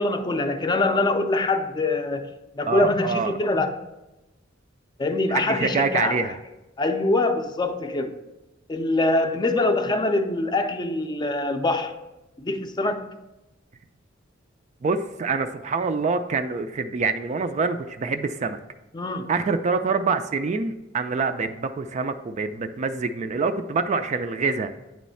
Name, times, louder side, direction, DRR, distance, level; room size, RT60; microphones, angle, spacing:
voice 1, 0.0-2.3 2.5-3.8 5.0-6.3 6.8-8.2 8.7-12.0 12.4-13.1 18.9-19.3, left 2 dB, 20° left, 0.5 m, -24 dB
voice 2, 2.6-3.4 5.3-6.4 14.8-18.6 19.3-24.7, right 4 dB, 35° right, 0.3 m, -26 dB
9.0 x 3.1 x 5.5 m
head